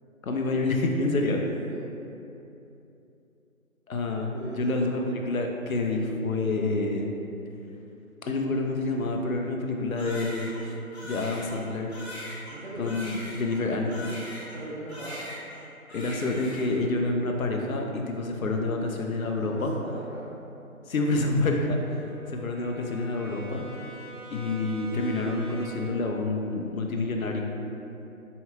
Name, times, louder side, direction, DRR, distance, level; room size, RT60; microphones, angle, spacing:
voice 1, 0.2-1.4 3.9-7.1 8.2-10.7 11.0-11.9 12.8-14.2 15.9-19.7 20.9-22.0 22.3-23.6 24.3-27.4, left 2 dB, 70° left, 2 dB, 0.6 m, -28 dB
voice 2, 4.3-4.9 12.5-12.9 14.5-15.2 19.4-20.2, right 1 dB, 50° right, -9 dB, 0.6 m, -39 dB
Crying sobbing, 10.0-14.6 14.9-15.6 15.9-16.8, left 1 dB, 50° left, 1.0 m, -41 dB
Brass instrument, 20.5-26.1, right 1 dB, 5° left, 1.4 m, -45 dB
4.5 x 2.7 x 2.3 m, 2.8 s
figure-of-eight pair, 155°, 43 cm